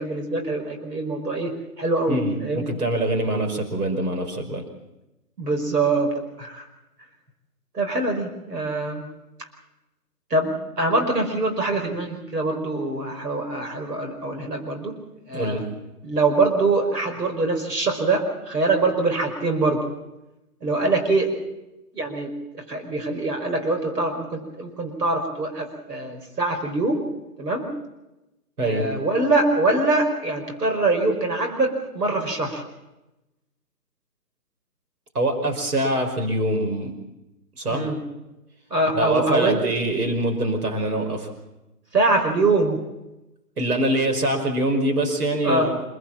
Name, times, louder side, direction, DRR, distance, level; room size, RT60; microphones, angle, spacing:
voice 1, 0.0-2.7 5.4-6.1 6.4-6.6 7.7-9.1 9.4-9.5 10.3-14.9 15.3-15.6 16.0-19.8 20.6-21.4 21.9-27.1 27.4-27.7 28.6-32.6 37.7-38.0 38.7-39.6 41.9-42.8 45.4-45.7, right 2 dB, 85° right, 4 dB, 5.4 m, -24 dB
voice 2, 2.1-4.6 15.3-15.7 28.6-28.9 35.1-36.9 37.6-37.9 38.9-41.3 43.6-45.8, right 1 dB, 70° right, 5 dB, 5.5 m, -24 dB
27.0 x 17.0 x 7.4 m, 0.96 s
hypercardioid pair, 165°, 47 cm